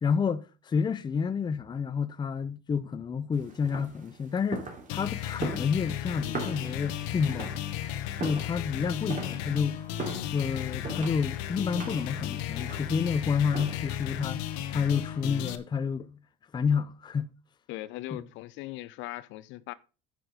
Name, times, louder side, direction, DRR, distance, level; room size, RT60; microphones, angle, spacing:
voice 1, 0.0-7.6 8.2-9.8 10.3-16.2 16.5-17.3 18.1-18.3, left 6 dB, 20° left, 0.6 m, -30 dB
sound 1, 3.3-14.0, right 4 dB, 40° right, 2.8 m, -41 dB
sound 2, 4.9-15.6, left 11 dB, 85° left, 1.0 m, -34 dB
voice 2, 17.7-19.7, left 16 dB, 65° left, 0.7 m, -39 dB
9.7 x 6.1 x 5.1 m
supercardioid pair, 110°, 21 cm